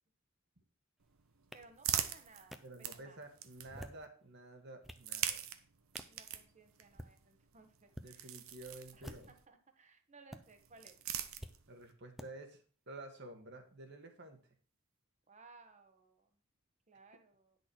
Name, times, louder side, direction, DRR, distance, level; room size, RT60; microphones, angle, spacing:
sound 1, 1.0-4.0 4.9-9.5 10.4-11.9, right 10 dB, 90° right, 0.9 m, -43 dB
sound 2, 1.5-1.6 2.5-2.6 3.6-4.1 4.6-5.1 5.9-6.2 6.8-7.1 7.9-8.1 8.9-9.5 10.3-10.4 11.4-11.5 12.2-12.3, equal, ahead, 0.6 m, -49 dB
voice 1, 1.5-3.2 6.1-8.3 8.9-11.0 15.3-16.4 16.9-17.6, right 3 dB, 35° right, 6 dB, 1.2 m, -60 dB
voice 2, 2.6-5.4 8.0-9.3 11.7-14.4, right 2 dB, 55° right, 5 dB, 1.8 m, -51 dB
10.0 x 6.4 x 4.5 m, 0.41 s
head